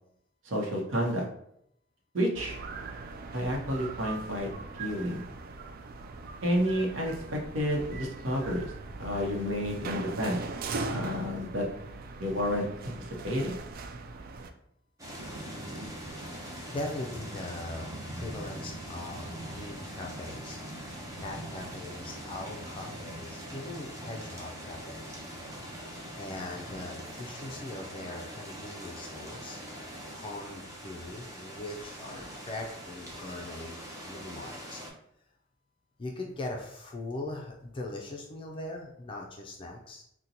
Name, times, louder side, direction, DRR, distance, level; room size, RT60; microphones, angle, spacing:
voice 1, 0.4-1.2 2.1-2.6 3.3-4.5 4.8-5.2 6.4-8.7 9.0-10.4 10.9-11.7 12.2-12.9 13.2-13.5, equal, 85° right, 0 dB, 0.8 m, -30 dB
sound 1, 2.3-14.5, right 3 dB, 50° right, 0.3 m, -40 dB
sound 2, 15.0-34.9, equal, 15° right, 0.7 m, -42 dB
voice 2, 16.0-20.6 21.2-25.2 25.5-25.9 26.2-29.6 30.1-33.8 34.0-34.8 36.0-40.0, left 2 dB, 25° left, 0 dB, 0.3 m, -41 dB
3.9 x 2.1 x 2.8 m, 0.74 s
head